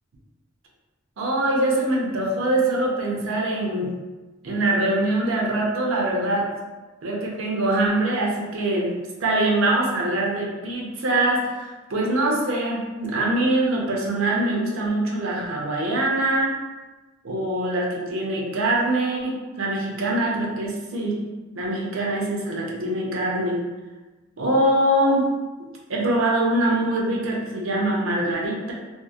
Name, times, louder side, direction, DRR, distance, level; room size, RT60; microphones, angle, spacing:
voice 1, 1.2-3.9 4.4-6.5 7.0-8.9 9.2-16.5 17.2-21.2 21.5-23.6 24.4-25.3 25.9-28.7, right 1 dB, 80° right, -2 dB, 0.6 m, -23 dB
2.9 x 2.4 x 2.3 m, 1.2 s
head